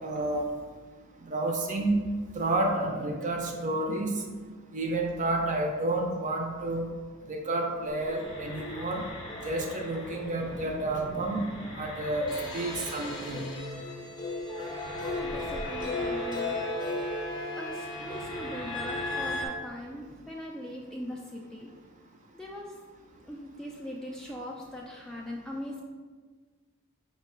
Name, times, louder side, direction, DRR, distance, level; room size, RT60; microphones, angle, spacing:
voice 1, 0.0-0.5 1.3-2.0 2.3-4.1 4.7-6.9 7.3-9.0 9.4-11.4 11.8-12.3 12.5-13.5, right 2 dB, 35° right, 1 dB, 0.6 m, -30 dB
sound 1, 7.9-19.5, left 2 dB, 20° left, 0.7 m, -36 dB
voice 2, 15.0-16.6 17.6-21.7 22.3-22.7 23.2-25.8, left 1 dB, 5° left, -3 dB, 0.3 m, -40 dB
5.0 x 2.2 x 4.8 m, 1.5 s
head